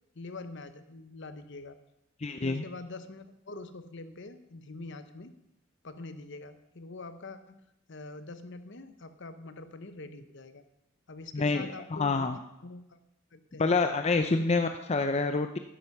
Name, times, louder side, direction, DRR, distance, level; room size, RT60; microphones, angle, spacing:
voice 1, 0.1-1.8 2.4-5.3 5.8-7.6 7.9-10.6 11.1-13.0 13.3-13.8 14.2-14.5, left 3 dB, 55° left, 11 dB, 0.9 m, -44 dB
voice 2, 2.2-2.6 11.3-12.4 13.6-15.6, left 3 dB, 30° left, 7 dB, 0.5 m, -27 dB
12.0 x 10.5 x 5.5 m, 0.85 s
head